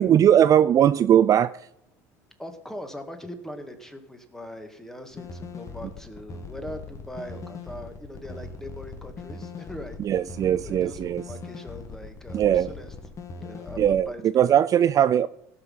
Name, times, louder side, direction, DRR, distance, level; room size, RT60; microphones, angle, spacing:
voice 1, 0.0-1.5 10.0-11.2 12.3-12.7 13.8-14.1 14.3-15.3, right 10 dB, 40° right, 14 dB, 0.4 m, -19 dB
voice 2, 2.4-10.0 10.6-12.9 13.4-14.6, equal, 5° left, 6 dB, 2.0 m, -41 dB
sound 1, 5.1-14.0, left 4 dB, 35° left, 1.9 m, -40 dB
17.5 x 5.9 x 5.7 m, 0.79 s
hypercardioid pair, 80°, 9 cm